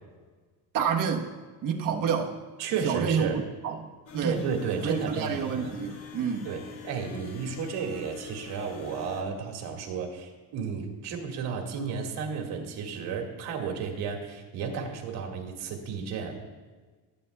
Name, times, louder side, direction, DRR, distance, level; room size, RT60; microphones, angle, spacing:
voice 1, 0.7-1.3 1.6-2.4 2.8-4.4 4.8-6.5, right 7 dB, 55° right, 1 dB, 1.2 m, -29 dB
voice 2, 2.6-3.4 4.2-5.7 6.4-16.4, right 6 dB, 80° right, 1 dB, 1.9 m, -33 dB
sound 1, 4.1-9.2, left 7 dB, 80° left, 1.9 m, -44 dB
18.0 x 8.3 x 2.3 m, 1.4 s
cardioid pair, 140°, 39 cm